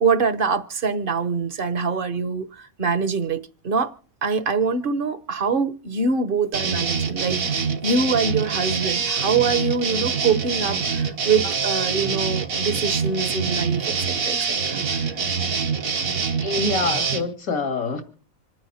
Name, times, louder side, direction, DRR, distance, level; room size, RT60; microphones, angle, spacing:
voice 1, 0.0-3.9 4.2-15.2, right 5 dB, 45° right, 1.1 m, -24 dB
sound 1, 6.5-17.2, right 5 dB, 75° right, 1.9 m, -25 dB
voice 2, 16.4-18.0, left 3 dB, 80° left, 2.7 m, -25 dB
26.5 x 9.5 x 4.3 m
omnidirectional pair, 1.5 m